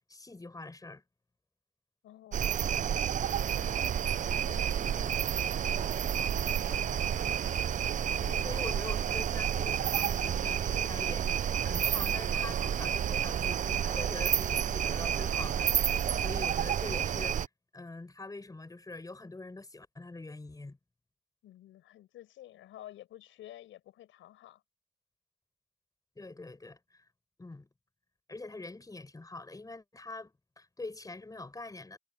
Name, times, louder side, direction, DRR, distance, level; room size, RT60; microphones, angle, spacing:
voice 1, 0.1-1.0 8.2-17.5 17.7-20.8 26.2-27.0 27.4-27.7 28.3-32.0, left 2 dB, 20° left, 5.4 m, -44 dB
voice 2, 2.0-7.0 21.4-24.6, left 13 dB, 85° left, 4.9 m, -52 dB
sound 1, 2.3-17.5, right 9 dB, 40° right, 0.4 m, -30 dB
cardioid pair, 90°, 20 cm